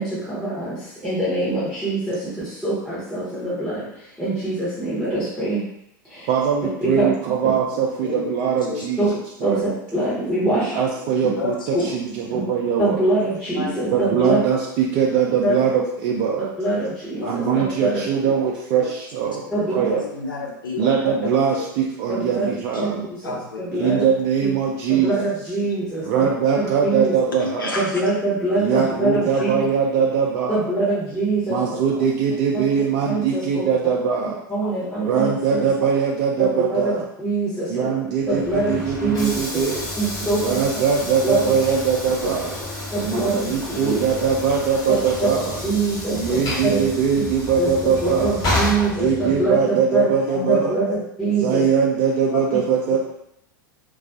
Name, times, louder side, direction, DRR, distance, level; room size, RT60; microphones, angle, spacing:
voice 1, 0.0-5.6 6.0-6.3 7.0-7.1 9.0-9.1 9.4-10.8 11.7-11.8 12.8-14.4 15.4-15.6 16.6-18.0 19.5-20.0 20.8-20.9 22.1-22.5 22.8-24.1 24.4-24.5 24.9-27.1 27.8-29.5 30.5-31.6 32.5-32.6 33.1-33.7 34.5-35.7 36.7-37.9 38.3-39.6 40.0-40.6 41.2-41.5 42.9-44.0 45.2-45.3 45.6-46.8 47.6-50.1 50.5-51.6, right 2 dB, 5° left, -11 dB, 0.8 m, -24 dB
voice 2, 6.3-7.6 8.0-9.0 9.4-9.6 10.5-11.5 11.9-13.0 13.9-16.5 17.2-19.4 19.7-20.0 20.8-23.0 23.7-25.1 26.0-27.8 28.6-30.7 31.5-34.4 35.0-37.1 37.7-39.9 40.3-42.6 43.0-45.6 46.1-48.4 49.0-50.8 51.3-53.0, right 6 dB, 45° right, -1 dB, 0.3 m, -21 dB
voice 3, 11.3-11.9 13.2-13.3 13.5-13.8 16.6-16.7 17.2-17.5 18.2-18.3 18.8-18.9 19.2-20.9 21.6-21.7 22.7-22.9 23.2-23.9 25.0-25.1 25.6-25.7 27.3-28.0 29.4-29.5 34.6-34.7 38.4-38.5 46.1-46.7 47.1-47.2 50.3-50.6 51.6-51.7 52.3-52.4 52.9-53.0, left 4 dB, 85° left, 0 dB, 0.5 m, -32 dB
Train / Sliding door, 38.2-49.6, left 1 dB, 35° left, 1.2 m, -30 dB
2.3 x 2.3 x 2.3 m, 0.78 s
figure-of-eight pair, 90°, 11 cm